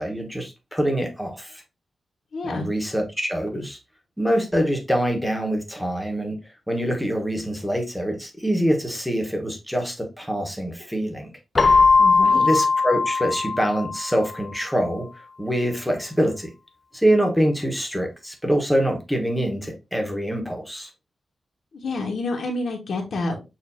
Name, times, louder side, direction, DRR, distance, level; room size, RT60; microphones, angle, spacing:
voice 1, 0.0-1.6 2.4-3.8 4.2-6.4 6.7-11.3 12.3-15.1 15.4-16.5 16.9-20.9, equal, ahead, 1.0 m, -25 dB
voice 2, 2.3-2.7 12.0-12.5 21.8-23.4, left 2 dB, 75° left, 1.1 m, -28 dB
Keyboard (musical), 11.5-14.3, left 4 dB, 30° left, 0.4 m, -19 dB
6.6 x 2.5 x 2.6 m
wide cardioid pair, 145°, 0 cm